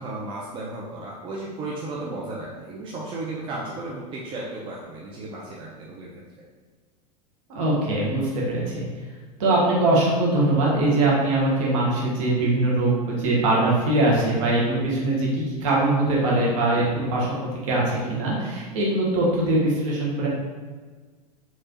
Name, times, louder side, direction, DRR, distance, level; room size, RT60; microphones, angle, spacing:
voice 1, 0.0-6.3 16.7-16.9, right 2 dB, 25° right, -4 dB, 0.6 m, -34 dB
voice 2, 7.5-8.9 9.4-20.3, right 2 dB, 50° right, -4 dB, 1.3 m, -22 dB
4.3 x 3.0 x 2.7 m, 1.4 s
figure-of-eight pair, 90°, 21 cm